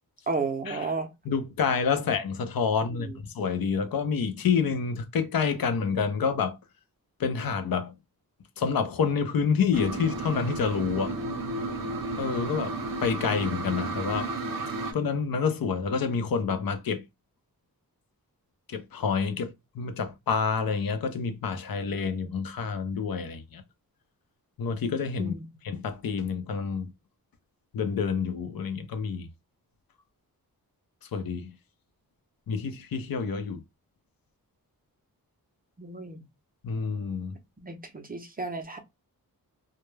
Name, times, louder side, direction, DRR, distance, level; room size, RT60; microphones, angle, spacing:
voice 1, 0.3-1.1 3.0-3.1 25.2-25.4 35.8-36.2 37.6-38.8, right 3 dB, 25° right, 0.4 m, -32 dB
voice 2, 1.3-6.6 7.2-7.9 8.6-11.2 12.2-14.3 14.9-17.0 18.7-23.6 24.6-25.3 25.6-26.9 27.7-29.3 31.1-31.5 32.5-33.6 36.6-37.4, left 6 dB, 70° left, 0.6 m, -28 dB
sound 1, 9.7-14.9, right 2 dB, 70° right, 0.6 m, -33 dB
2.1 x 2.0 x 3.1 m
wide cardioid pair, 125°, 36 cm